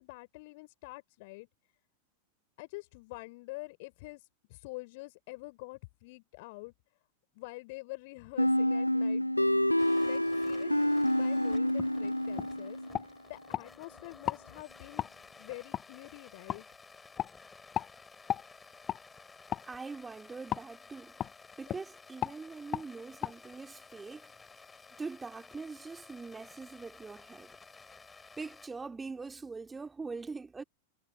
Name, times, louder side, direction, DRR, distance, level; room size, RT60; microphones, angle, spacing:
voice 1, 0.0-1.5 2.6-6.7 7.4-9.6 10.0-12.8 13.3-15.0 15.4-16.7, left 24 dB, 50° left, 4.1 m, -46 dB
sound 1, 8.4-13.0, left 1 dB, 90° left, 0.7 m, -28 dB
sound 2, 9.8-28.7, left 4 dB, 15° left, 7.1 m, -55 dB
sound 3, 11.8-11.9 12.4-12.5 12.9-13.7 14.2-14.4 15.0-15.1 15.7-15.9 16.5-16.6 17.2-17.3 17.7-17.9 18.3-18.5 18.9-19.0 19.5-19.7 20.5-20.7 21.2-21.3 21.7-21.8 22.2-22.4 22.7-22.9 23.2-23.3, left 11 dB, 30° left, 1.4 m, -34 dB
voice 2, 19.6-21.2 21.6-24.3 25.0-27.5 28.4-30.6, right 4 dB, 10° right, 3.1 m, -43 dB
figure-of-eight pair, 90°, 0 cm